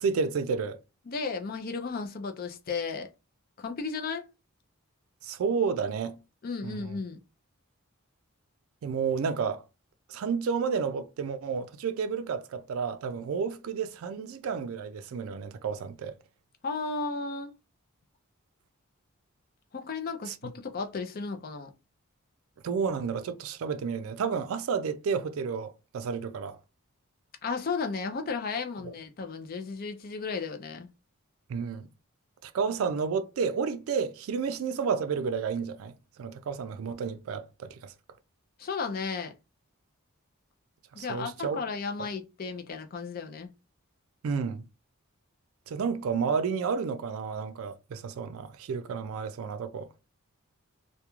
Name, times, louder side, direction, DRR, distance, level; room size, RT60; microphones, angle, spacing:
voice 1, 0.0-0.8 5.2-6.2 6.6-7.0 8.8-9.6 10.1-16.2 20.3-20.4 22.6-26.6 28.8-28.9 31.5-31.9 32.4-35.9 36.2-37.9 41.0-41.6 44.2-44.6 45.7-49.9, right 5 dB, 70° right, 0.3 m, -31 dB
voice 2, 1.1-3.1 3.6-4.2 6.4-7.2 16.6-17.6 19.7-21.7 27.4-30.9 38.6-39.3 40.9-43.5, left 4 dB, 45° left, 0.4 m, -34 dB
2.3 x 2.2 x 2.9 m
head